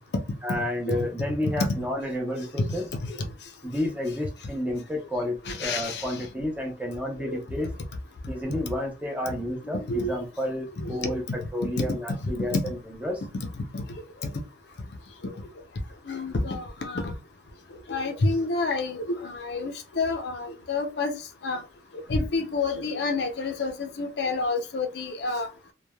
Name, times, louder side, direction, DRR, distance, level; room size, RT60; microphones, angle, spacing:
voice 1, 0.4-2.9 3.6-7.7 8.3-13.2, left 1 dB, 5° right, 0.6 m, -31 dB
voice 2, 5.5-6.2 7.3-7.4 9.7-10.1 10.8-11.1 11.8-12.0 12.5-12.6 13.7-13.8 15.2-15.3 16.1-17.1 17.9-21.6 22.1-25.5, left 3 dB, 60° left, 0.5 m, -29 dB
3.1 x 2.2 x 2.2 m
head